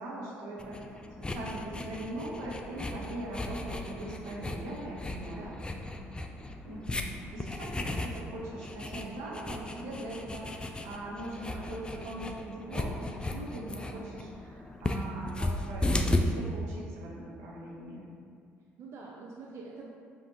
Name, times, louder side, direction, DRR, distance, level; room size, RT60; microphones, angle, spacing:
voice 1, 0.0-5.5 6.6-18.1, right 1 dB, 85° right, -5 dB, 0.9 m, -41 dB
sound 1, 0.6-16.2, left 1 dB, 15° left, 0.3 m, -36 dB
voice 2, 5.2-5.9 18.8-19.9, right 3 dB, 55° right, -3 dB, 0.4 m, -46 dB
5.4 x 2.5 x 2.8 m, 2.3 s
supercardioid pair, 65°, 5 cm